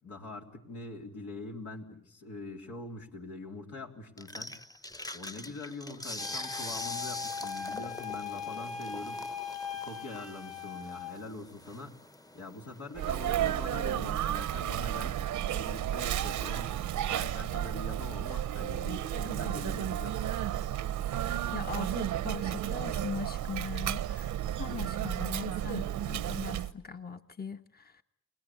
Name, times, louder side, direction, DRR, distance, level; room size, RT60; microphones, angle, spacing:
voice 1, 0.0-4.6 5.1-9.3 9.7-12.0 12.3-16.8 17.1-20.2, left 2 dB, 80° left, 1 dB, 3.6 m, -43 dB
sound 1, 4.2-13.4, left 1 dB, 10° left, 1.0 m, -43 dB
Wind instrument woodwind instrument, 6.2-11.2, left 7 dB, 60° left, 6.2 m, -40 dB
Sneeze, 12.9-26.7, right 11 dB, 85° right, 1.0 m, -32 dB
voice 2, 21.5-28.0, left 6 dB, 30° left, 7 dB, 1.3 m, -40 dB
30.0 x 20.0 x 8.5 m, 0.72 s
supercardioid pair, 50°, 30 cm